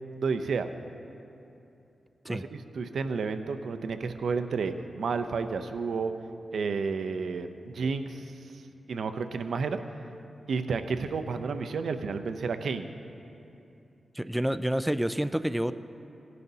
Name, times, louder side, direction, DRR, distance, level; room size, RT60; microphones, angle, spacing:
voice 1, 0.2-0.7 2.3-6.2 6.5-8.2 8.9-9.8 10.5-12.9, right 5 dB, 80° right, 9 dB, 0.5 m, -31 dB
voice 2, 14.2-15.7, equal, 5° right, 12 dB, 0.3 m, -28 dB
18.0 x 10.5 x 2.7 m, 2.8 s
cardioid pair, 75°, 0 cm